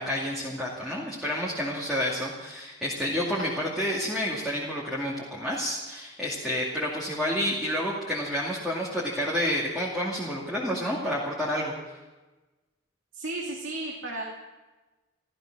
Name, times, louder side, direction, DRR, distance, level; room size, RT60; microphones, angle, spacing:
voice 1, 0.0-11.7, equal, ahead, -7 dB, 2.5 m, -29 dB
voice 2, 13.1-14.2, right 2 dB, 75° right, -2 dB, 2.5 m, -34 dB
14.5 x 14.5 x 6.1 m, 1.2 s
head